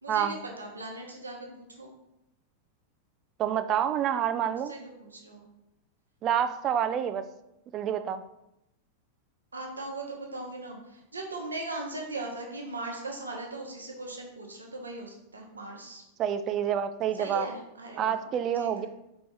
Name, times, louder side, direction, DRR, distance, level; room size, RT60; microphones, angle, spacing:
voice 1, 0.0-1.9 4.7-5.4 9.5-16.0 17.2-18.2 18.5-18.9, right 2 dB, 75° right, 0 dB, 0.9 m, -39 dB
voice 2, 3.4-4.7 6.2-7.2 7.7-8.2 16.2-17.5 18.0-18.9, right 9 dB, 35° right, 11 dB, 0.3 m, -28 dB
4.8 x 3.0 x 3.7 m, 0.88 s
figure-of-eight pair, 90°, 0 cm